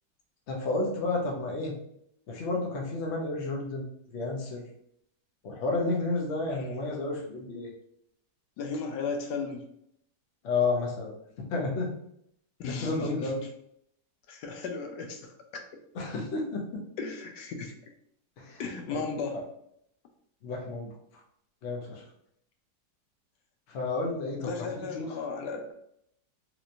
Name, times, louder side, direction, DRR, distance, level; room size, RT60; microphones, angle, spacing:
voice 1, 0.5-1.7 2.3-4.6 5.4-7.7 10.4-11.9 12.7-13.4 15.9-16.6 18.4-18.6 18.9-19.0 20.4-20.9 21.6-22.0 23.7-24.5 25.0-25.1, left 3 dB, 55° left, -1 dB, 0.8 m, -31 dB
voice 2, 8.6-9.7 12.6-13.5 14.3-15.3 15.7-15.8 17.0-17.9 18.6-19.4 24.4-25.7, left 4 dB, 85° left, 4 dB, 1.2 m, -35 dB
3.2 x 3.0 x 2.5 m, 0.73 s
omnidirectional pair, 1.9 m